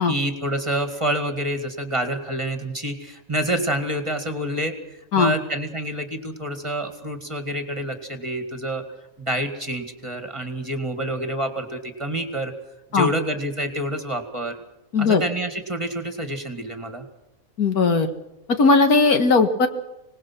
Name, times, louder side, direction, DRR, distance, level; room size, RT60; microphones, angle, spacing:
voice 1, 0.0-8.8 9.2-12.5 12.9-14.6 15.0-17.0, right 1 dB, 20° right, 6 dB, 2.2 m, -28 dB
voice 2, 14.9-15.2 17.6-18.1 18.5-19.7, left 4 dB, 90° left, 7 dB, 2.2 m, -18 dB
25.5 x 19.0 x 6.1 m, 0.93 s
omnidirectional pair, 1.5 m